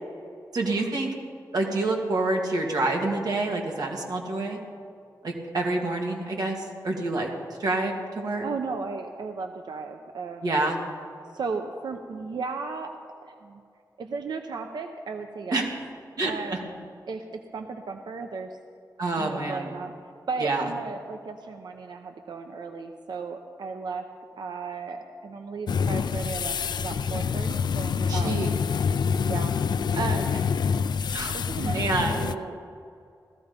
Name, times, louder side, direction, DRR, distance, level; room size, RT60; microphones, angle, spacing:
voice 1, 0.5-1.1 1.5-4.6 5.2-7.3 7.6-8.4 10.4-10.8 15.5-15.7 16.2-16.6 19.0-19.7 20.4-20.6 28.1-28.6 31.1-32.2, right 2 dB, 60° right, 1 dB, 2.4 m, -27 dB
voice 2, 8.4-10.6 11.3-13.6 14.0-15.7 16.2-16.7 17.1-18.5 19.2-19.9 20.3-24.0 24.4-28.3 29.2-29.5 29.9-30.6 31.3-32.6, right 4 dB, 85° right, 5 dB, 0.9 m, -35 dB
sound 1, 25.7-32.3, left 6 dB, 80° left, 0.4 m, -26 dB
17.0 x 14.5 x 5.3 m, 2.4 s
wide cardioid pair, 175°, 7 cm